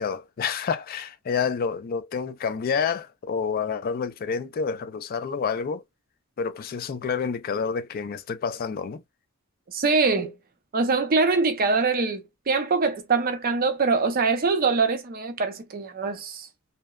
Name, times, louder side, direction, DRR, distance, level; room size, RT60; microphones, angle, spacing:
voice 1, 0.0-5.8 6.4-9.0, left 6 dB, 45° left, 0.3 m, -28 dB
voice 2, 9.7-10.3 10.7-16.5, right 4 dB, 45° right, 0.6 m, -23 dB
2.7 x 2.1 x 2.3 m
head